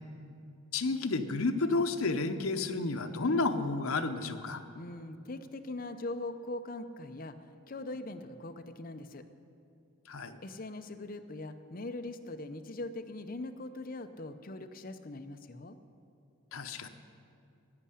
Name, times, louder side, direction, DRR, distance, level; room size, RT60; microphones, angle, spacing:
voice 1, 0.7-4.6 10.1-10.4 16.5-16.9, left 3 dB, 75° left, 7 dB, 0.8 m, -31 dB
voice 2, 4.8-9.2 10.4-15.8, left 2 dB, 40° left, 8 dB, 0.6 m, -41 dB
11.0 x 8.5 x 9.9 m, 2.6 s
head